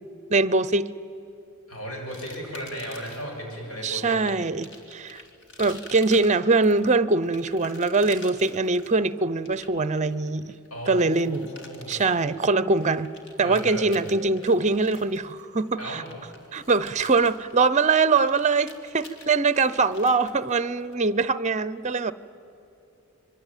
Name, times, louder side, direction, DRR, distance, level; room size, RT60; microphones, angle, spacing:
voice 1, 0.3-0.9 3.8-5.2 5.6-10.5 10.9-11.5 11.9-13.1 13.4-16.0 16.5-22.1, right 3 dB, 30° right, 17 dB, 0.7 m, -23 dB
voice 2, 1.7-4.3 10.7-12.0 13.4-14.0 15.8-16.1, equal, 75° left, 0 dB, 7.9 m, -35 dB
sound 1, 2.1-3.4 4.1-20.9, left 2 dB, 60° left, 3.4 m, -47 dB
26.5 x 23.5 x 9.1 m, 2.9 s
head